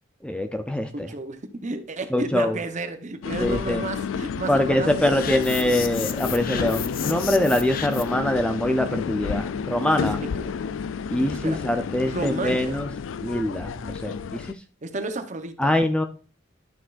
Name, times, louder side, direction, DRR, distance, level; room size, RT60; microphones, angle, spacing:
voice 1, 0.2-1.1 2.1-2.6 3.4-3.8 4.5-10.2 11.1-12.9 13.2-14.5 15.6-16.0, left 1 dB, 5° left, 0.5 m, -24 dB
voice 2, 0.9-5.4 9.8-10.5 11.4-11.6 12.1-12.8 14.8-15.7, right 2 dB, 40° right, 0.9 m, -32 dB
sound 1, 3.2-14.5, left 6 dB, 80° left, 0.4 m, -31 dB
sound 2, 5.2-8.3, left 9 dB, 45° left, 0.6 m, -34 dB
11.5 x 6.2 x 2.5 m
head